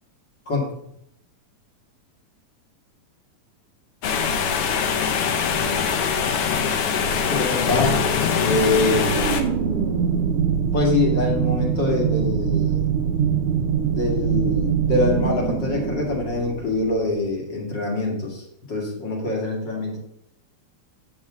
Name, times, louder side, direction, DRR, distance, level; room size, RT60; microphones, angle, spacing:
sound 1, 4.0-9.4, left 6 dB, 65° left, 1.5 m, -22 dB
voice 1, 7.2-8.0 8.4-9.3 10.7-12.8 13.9-20.0, left 2 dB, 40° left, -2 dB, 2.5 m, -24 dB
sound 2, 8.9-17.1, right 7 dB, 65° right, 1.5 m, -23 dB
9.6 x 7.1 x 3.7 m, 0.73 s
omnidirectional pair, 3.4 m